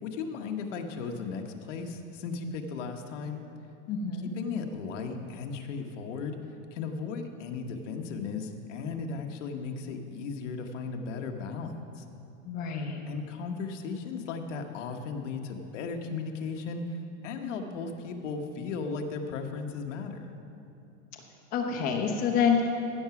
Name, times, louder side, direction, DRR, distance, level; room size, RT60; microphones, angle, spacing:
voice 1, 0.0-3.4 4.2-6.4 6.7-12.0 13.1-17.0 17.2-20.3, left 5 dB, 65° left, 4 dB, 1.2 m, -36 dB
voice 2, 3.9-4.3 12.4-13.0 21.5-22.8, left 6 dB, 20° left, 1 dB, 0.8 m, -27 dB
15.5 x 5.9 x 5.9 m, 2.7 s
supercardioid pair, 175°, 39 cm